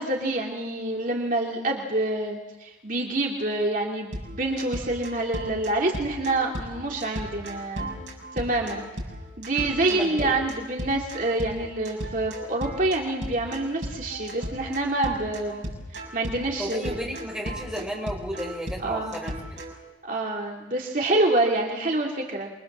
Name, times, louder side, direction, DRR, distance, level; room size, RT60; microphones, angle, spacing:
voice 1, 0.0-7.9 8.3-8.8 9.4-15.6 15.9-17.0 17.5-17.9 18.8-19.2 20.0-22.5, right 2 dB, 45° right, -1 dB, 2.7 m, -27 dB
sound 1, 4.1-19.8, right 1 dB, 65° right, 7.0 m, -36 dB
voice 2, 9.9-10.3 16.6-19.6, equal, 5° right, -1 dB, 5.8 m, -33 dB
27.5 x 23.5 x 7.5 m, 1.1 s
head